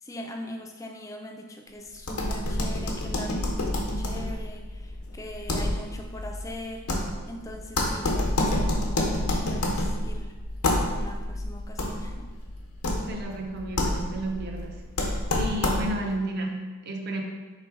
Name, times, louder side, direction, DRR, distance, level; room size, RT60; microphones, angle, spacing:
voice 1, 0.0-6.9 7.3-10.4 10.7-12.3, left 1 dB, 15° left, 3 dB, 0.3 m, -41 dB
sound 1, 2.0-16.1, left 1 dB, 90° left, 0.8 m, -28 dB
voice 2, 13.1-14.8 15.3-17.2, right 1 dB, 45° right, 2 dB, 0.5 m, -32 dB
3.4 x 3.2 x 4.6 m, 1.3 s
head